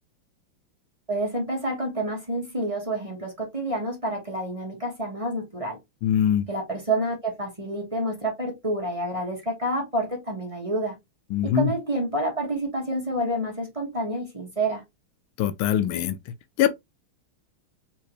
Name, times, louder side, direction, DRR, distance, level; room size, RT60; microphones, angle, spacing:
voice 1, 1.1-5.8 6.5-11.0 11.4-14.8, right 1 dB, 15° right, 1.6 m, -28 dB
voice 2, 6.0-6.4 11.3-11.7 15.4-16.2 16.6-16.7, left 10 dB, 80° left, 1.4 m, -22 dB
4.4 x 3.6 x 3.1 m
omnidirectional pair, 2.2 m